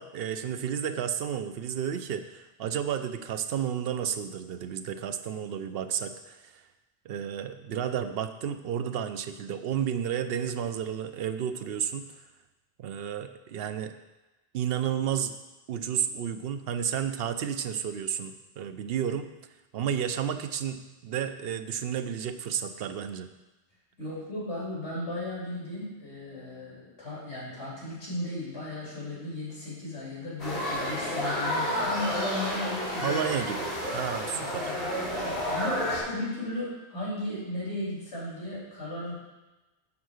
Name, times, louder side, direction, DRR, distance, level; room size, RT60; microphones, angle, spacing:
voice 1, 0.0-6.6 7.0-12.1 12.8-13.9 14.5-15.4 15.7-19.3 19.7-23.3 33.0-34.7, right 8 dB, 65° right, 9 dB, 0.7 m, -32 dB
voice 2, 24.0-33.2 34.3-34.7 35.4-39.1, left 1 dB, 85° left, -7 dB, 3.5 m, -35 dB
sound 1, 30.4-36.0, equal, 65° left, 3.2 m, -30 dB
7.2 x 4.5 x 6.3 m, 1.1 s
omnidirectional pair, 1.1 m